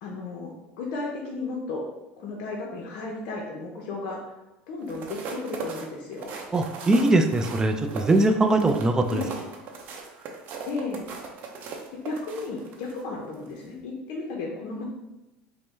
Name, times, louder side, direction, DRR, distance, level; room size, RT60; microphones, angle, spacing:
voice 1, 0.0-1.9 2.2-4.2 4.7-6.4 9.1-9.3 10.6-11.1 11.9-14.8, left 3 dB, 65° left, -2 dB, 0.7 m, -34 dB
sound 1, 4.8-13.0 13.5-13.7, right 4 dB, 55° right, 0.7 m, -39 dB
voice 2, 6.5-9.2, right 2 dB, 15° right, 6 dB, 0.4 m, -21 dB
5.1 x 2.1 x 3.2 m, 0.98 s
supercardioid pair, 120°, 4 cm